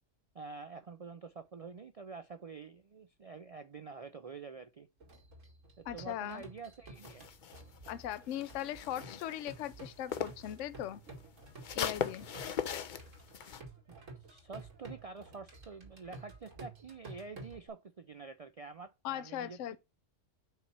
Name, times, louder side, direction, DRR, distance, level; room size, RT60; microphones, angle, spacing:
voice 1, 0.3-4.9 5.8-7.3 14.3-19.8, right 4 dB, 65° right, 0.3 m, -47 dB
sound 1, 5.0-17.7, right 2 dB, 90° right, 2.4 m, -52 dB
voice 2, 5.9-6.4 7.9-11.0 11.7-12.3 19.0-19.8, left 11 dB, 80° left, 0.9 m, -39 dB
sound 2, 7.0-10.5 10.8-13.6, left 8 dB, 50° left, 0.6 m, -40 dB
5.7 x 4.3 x 5.9 m
omnidirectional pair, 1.3 m